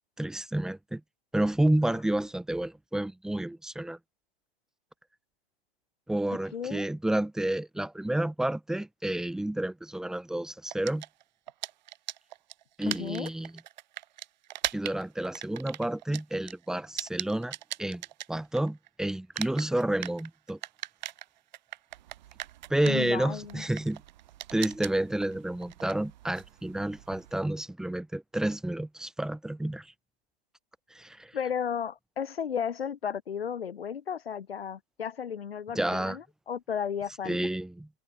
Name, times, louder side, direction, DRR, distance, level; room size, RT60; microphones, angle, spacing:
voice 1, 0.2-1.0 1.3-4.0 6.1-11.0 12.8-13.5 14.7-18.0 18.3-20.6 22.7-24.0 24.5-29.9 30.9-31.3 35.7-36.2 37.3-37.9, right 1 dB, ahead, 1.9 m, -30 dB
voice 2, 6.5-6.9 12.9-13.3 22.8-23.6 31.3-37.4, left 7 dB, 70° left, 6.8 m, -34 dB
sound 1, 10.7-18.9 19.1-27.4, right 14 dB, 45° right, 5.1 m, -40 dB
hypercardioid pair, 150°, 31 cm